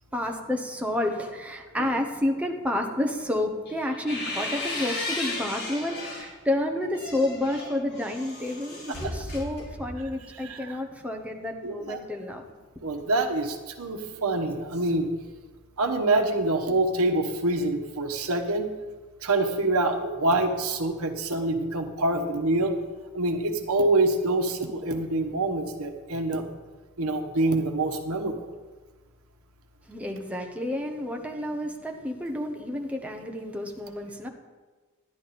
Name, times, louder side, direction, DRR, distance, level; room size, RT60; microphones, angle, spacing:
voice 1, 0.1-12.4 29.9-34.3, left 1 dB, 5° right, 2 dB, 1.0 m, -30 dB
sound 1, 3.6-6.3 6.8-10.1, left 2 dB, 50° left, 4.1 m, -35 dB
voice 2, 10.3-10.8 11.6-12.0 12.8-15.1 15.8-18.7 19.2-22.7 23.1-26.4 27.0-28.3, right 2 dB, 75° right, 5 dB, 1.1 m, -26 dB
12.0 x 10.5 x 4.2 m, 1.3 s
head